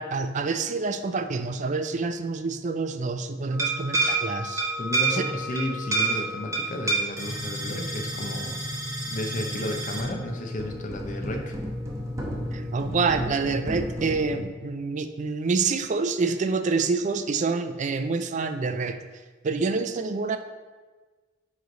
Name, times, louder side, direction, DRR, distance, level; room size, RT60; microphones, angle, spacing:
voice 1, 0.0-4.7 5.1-5.2 12.5-19.0 19.4-20.4, right 4 dB, 40° right, 9 dB, 0.4 m, -27 dB
sound 1, 3.5-14.4, right 2 dB, 15° right, 1.0 m, -30 dB
voice 2, 4.8-8.7 9.1-11.6, left 1 dB, 45° left, 3 dB, 0.8 m, -33 dB
9.5 x 3.2 x 3.9 m, 1.3 s
head